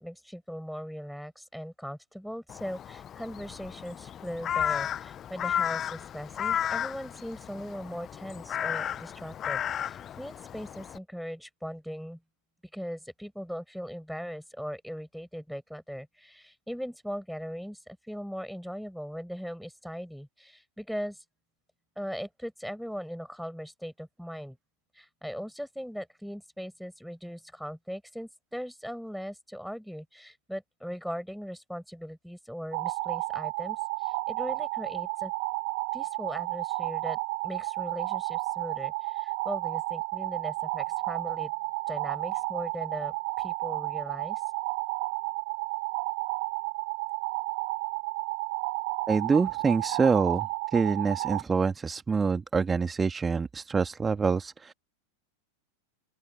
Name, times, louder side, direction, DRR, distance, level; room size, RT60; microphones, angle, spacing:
voice 1, 0.0-12.2 12.7-21.2 22.0-24.6 24.9-35.3 35.9-37.2 37.4-41.5 41.9-44.4, equal, ahead, 7.7 m, -39 dB
Crow, 2.5-11.0, left 9 dB, 25° left, 1.0 m, -33 dB
sound 1, 32.7-51.4, right 28 dB, 45° right, 1.2 m, -32 dB
voice 2, 49.1-54.7, right 5 dB, 15° right, 2.1 m, -26 dB
open air
figure-of-eight pair, 90°, 0 cm